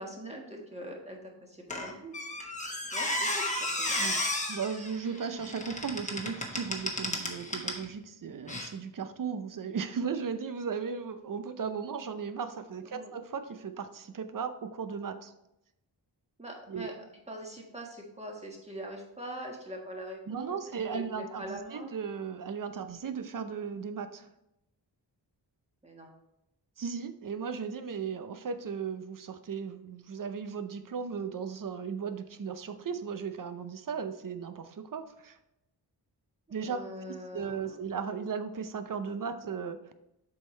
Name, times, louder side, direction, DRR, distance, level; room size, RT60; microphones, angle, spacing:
voice 1, 0.0-2.1 2.8-4.1 12.8-13.2 16.4-21.9 25.8-26.1 36.6-37.8, right 1 dB, 15° right, 0 dB, 1.6 m, -43 dB
Squeak, 1.7-7.9 8.5-8.7, left 1 dB, 15° left, 1.1 m, -33 dB
voice 2, 4.0-15.3 16.7-16.9 20.3-24.3 26.8-35.4 36.5-36.8 37.3-39.8, right 6 dB, 50° right, 10 dB, 0.6 m, -36 dB
7.6 x 5.6 x 3.2 m, 0.85 s
wide cardioid pair, 115°, 43 cm